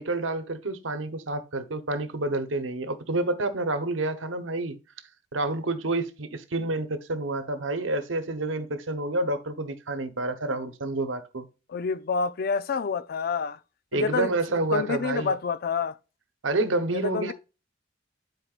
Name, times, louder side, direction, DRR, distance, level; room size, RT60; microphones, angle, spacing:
voice 1, 0.0-4.8 5.3-11.5 13.9-15.3 16.4-17.3, right 2 dB, 85° right, 1.0 m, -29 dB
voice 2, 11.7-13.6 13.9-14.3 14.7-16.0 16.9-17.3, left 5 dB, 55° left, 0.4 m, -28 dB
11.0 x 4.6 x 2.4 m
head